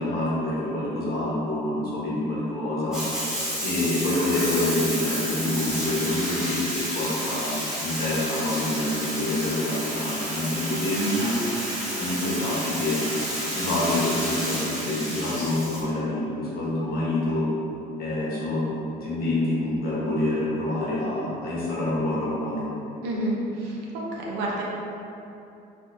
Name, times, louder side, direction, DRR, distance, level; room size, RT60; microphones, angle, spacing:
voice 1, 0.0-3.0 3.6-7.5 7.8-11.3 12.0-13.0 13.5-17.5 18.0-18.7 19.0-22.6, left 1 dB, 65° left, -7 dB, 1.0 m, -27 dB
Bathtub (filling or washing), 2.9-15.8, equal, 5° right, 1.0 m, -30 dB
voice 2, 23.0-24.6, right 1 dB, 85° right, -4 dB, 0.7 m, -29 dB
3.6 x 2.5 x 2.6 m, 2.8 s
cardioid pair, 110°, 17 cm